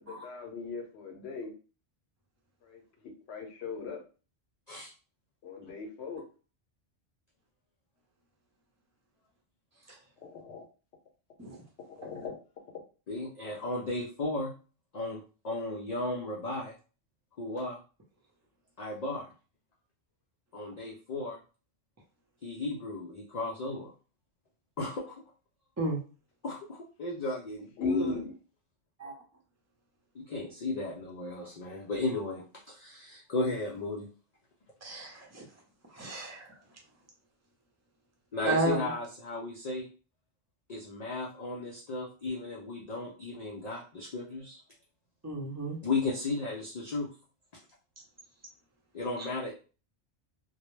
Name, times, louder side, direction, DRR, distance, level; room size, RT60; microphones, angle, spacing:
voice 1, 0.0-1.5 2.6-4.0 5.4-6.2 10.2-10.6 12.0-12.4 27.8-28.3, left 4 dB, 80° left, 4 dB, 0.8 m, -37 dB
voice 2, 13.1-14.5 14.9-16.7 17.4-17.8 18.8-19.3 20.5-21.4 22.4-23.9 24.8-25.2 26.4-28.2 30.1-34.1 38.3-39.9 40.7-44.6 45.8-47.1 48.9-49.5, left 2 dB, 55° left, -3 dB, 0.4 m, -35 dB
voice 3, 34.8-35.4 35.9-36.6 38.4-38.9 45.2-45.8, right 2 dB, 20° right, -2 dB, 0.6 m, -32 dB
2.2 x 2.0 x 3.0 m, 0.36 s
omnidirectional pair, 1.1 m